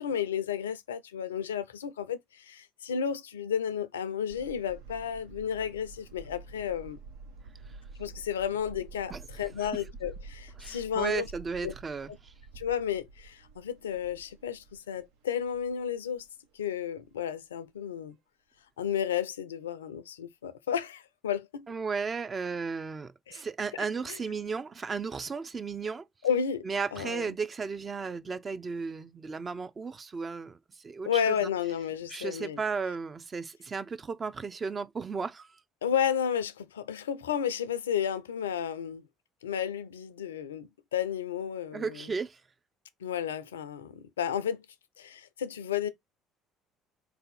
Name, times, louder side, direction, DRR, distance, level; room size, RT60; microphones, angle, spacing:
voice 1, 0.0-7.0 8.0-11.3 11.6-11.7 12.1-12.2 12.6-16.2 16.5-18.2 18.8-21.7 23.3-23.4 24.1-24.2 26.2-26.7 26.9-27.3 31.0-32.6 35.8-39.0 39.4-42.1 43.0-44.6 45.0-45.9, left 8 dB, 85° left, 0.4 m, -32 dB
sound 1, 4.3-16.3 16.6-16.7 17.0-17.1, right 4 dB, 75° right, 0.7 m, -49 dB
voice 2, 10.6-12.3 21.7-26.1 26.6-31.5 32.1-35.6 41.7-42.4, right 5 dB, 35° right, 0.5 m, -35 dB
4.0 x 2.7 x 4.0 m
hypercardioid pair, 60°, 0 cm